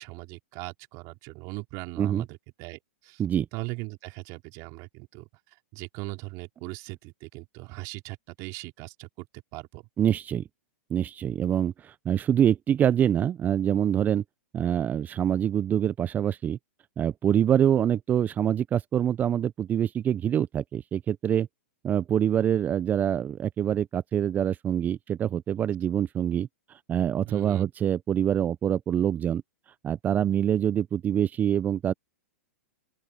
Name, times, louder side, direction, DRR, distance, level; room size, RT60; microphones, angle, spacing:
voice 1, 0.0-3.2 3.5-5.3 5.7-9.3 9.5-9.8 27.2-27.7, right 26 dB, 45° right, 4.3 m, -39 dB
voice 2, 10.0-10.4 10.9-14.2 14.5-16.6 17.0-21.5 21.8-26.5 26.9-29.4 29.8-31.9, right 9 dB, 20° right, 0.5 m, -25 dB
open air
hypercardioid pair, 115°, 8 cm